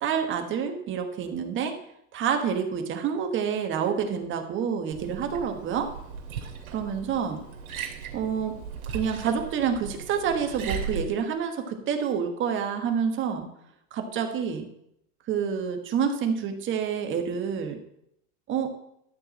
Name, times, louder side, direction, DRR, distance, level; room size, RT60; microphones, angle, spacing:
voice 1, 0.0-1.7 2.1-5.9 6.7-7.4 8.1-8.6 8.9-13.5 13.9-14.7 15.3-17.8 18.5-18.7, right 7 dB, 25° right, 5 dB, 1.4 m, -28 dB
Liquid, 4.9-11.0, right 6 dB, 85° right, 2.7 m, -37 dB
12.5 x 4.7 x 7.6 m, 0.76 s
supercardioid pair, 150°, 43 cm